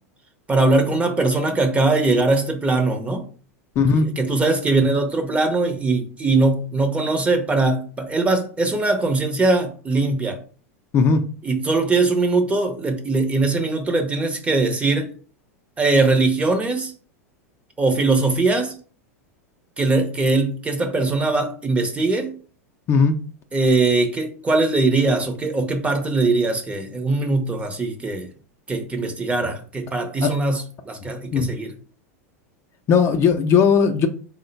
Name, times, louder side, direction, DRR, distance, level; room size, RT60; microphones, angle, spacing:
voice 1, 0.5-3.2 3.9-10.4 11.4-15.1 15.8-16.9 17.8-18.7 19.8-22.3 23.5-28.3 28.7-31.7, right 3 dB, 15° right, 0.7 m, -21 dB
voice 2, 3.8-4.1 10.9-11.2 22.9-23.2 30.2-30.3 31.3-31.5 32.9-34.1, left 5 dB, 35° left, 0.4 m, -17 dB
3.7 x 2.1 x 3.9 m
hypercardioid pair, 105°, 8 cm